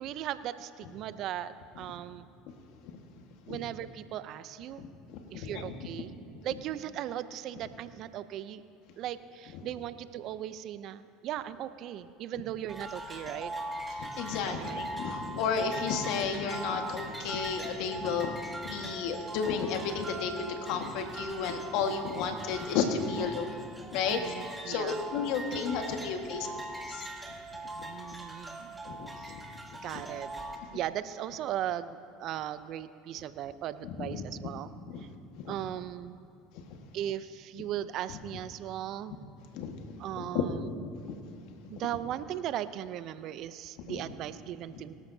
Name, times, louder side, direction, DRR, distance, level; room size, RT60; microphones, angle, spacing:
voice 1, 0.0-2.3 3.5-4.8 5.3-6.2 6.4-8.6 9.0-13.5 14.5-15.1 24.1-25.0 27.7-28.8 29.2-30.3 30.7-35.1 35.5-36.3 36.9-39.1 40.0-40.7 41.7-44.9, right 11 dB, 55° right, 14 dB, 0.6 m, -38 dB
voice 2, 4.8-5.8 13.9-23.5 23.9-24.3 24.6-26.5 26.9-27.1 27.8-27.9 28.8-29.4 29.9-30.0 33.8-34.2 34.9-35.0 35.4-35.5 38.1-38.2 39.5-39.7 40.2-40.4 41.1-41.2 41.6-41.7 43.9-44.0 44.7-44.8, left 6 dB, 65° left, 5 dB, 1.6 m, -33 dB
sound 1, 12.7-30.6, right 1 dB, 10° right, 1.7 m, -41 dB
23.0 x 12.5 x 2.8 m, 2.4 s
hypercardioid pair, 85°, 0 cm